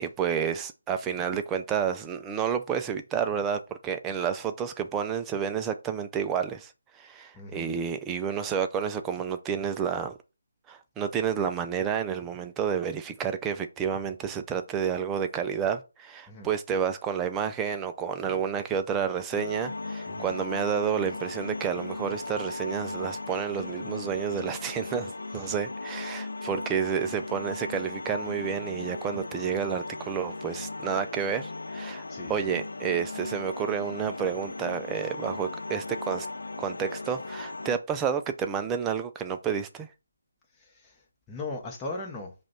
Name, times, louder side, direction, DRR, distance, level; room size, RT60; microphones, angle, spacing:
voice 1, 0.0-6.7 7.0-10.2 10.7-32.0 32.3-36.3 36.6-39.9, right 7 dB, 10° right, 0.4 m, -30 dB
voice 2, 7.3-7.7 16.3-16.5 20.1-20.3 25.4-25.5 32.1-32.4 40.6-41.0 41.3-42.3, left 2 dB, 10° left, 0.8 m, -38 dB
sound 1, 19.3-37.8, left 3 dB, 65° left, 0.5 m, -37 dB
4.9 x 2.3 x 4.2 m
figure-of-eight pair, 150°, 0 cm